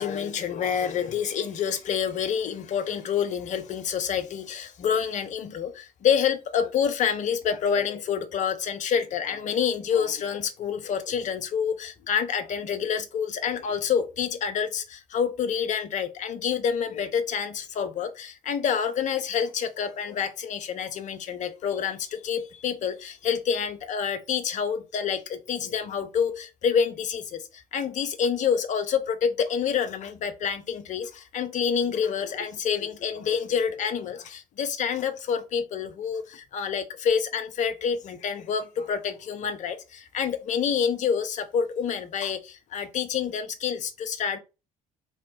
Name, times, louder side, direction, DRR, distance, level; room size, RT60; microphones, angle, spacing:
voice 1, 0.0-27.4 27.7-44.4, left 7 dB, 45° left, 0.6 m, -27 dB
3.0 x 2.8 x 3.2 m
figure-of-eight pair, 50°, 18 cm